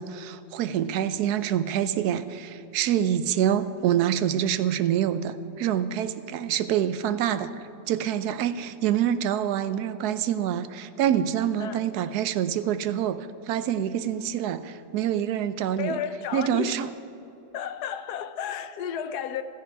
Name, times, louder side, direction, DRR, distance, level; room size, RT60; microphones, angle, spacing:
voice 1, 0.0-7.5 7.9-16.0 16.3-16.9, right 10 dB, 70° right, 1.1 m, -26 dB
voice 2, 15.8-16.8 17.5-19.4, left 8 dB, 70° left, 1.1 m, -32 dB
15.5 x 14.5 x 4.7 m
omnidirectional pair, 1.9 m